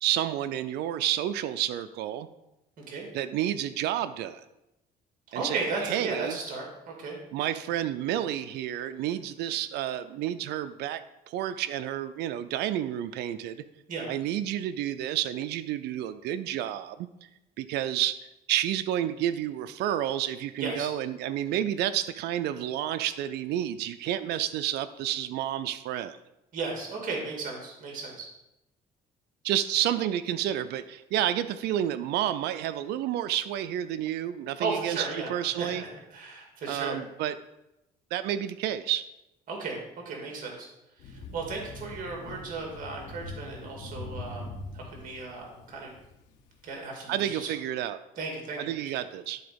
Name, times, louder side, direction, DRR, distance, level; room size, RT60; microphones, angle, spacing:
voice 1, 0.0-2.3 3.1-4.4 5.3-6.4 7.3-11.0 11.3-13.6 14.1-17.1 17.6-26.2 29.4-35.8 36.7-37.3 38.1-39.1 47.1-48.0 48.6-49.4, right 11 dB, 80° right, 11 dB, 0.5 m, -30 dB
voice 2, 2.8-3.1 5.3-7.2 13.9-14.1 20.6-20.9 26.5-28.3 34.6-35.3 35.6-37.0 39.5-40.7 41.0-45.9 46.6-47.5 48.2-49.0, right 3 dB, 55° right, 0 dB, 2.2 m, -35 dB
Thunder, 41.0-46.7, left 2 dB, 85° left, 1.5 m, -43 dB
11.5 x 3.9 x 5.1 m, 0.91 s
cardioid pair, 110°, 17 cm